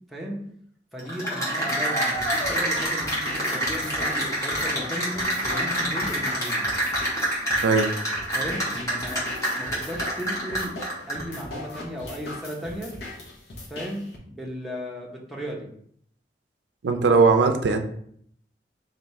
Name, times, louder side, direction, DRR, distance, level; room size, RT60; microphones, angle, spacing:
voice 1, 0.9-6.7 8.3-9.2 9.6-10.7 11.1-12.9 13.7-15.7, equal, ahead, -3 dB, 0.7 m, -35 dB
Cheering / Applause, 1.0-11.4, right 1 dB, 20° left, 1.1 m, -27 dB
sound 1, 2.1-14.2, left 2 dB, 70° left, 0.9 m, -39 dB
voice 2, 16.8-17.9, right 4 dB, 85° right, 6 dB, 0.4 m, -19 dB
3.4 x 2.6 x 4.2 m, 0.66 s
head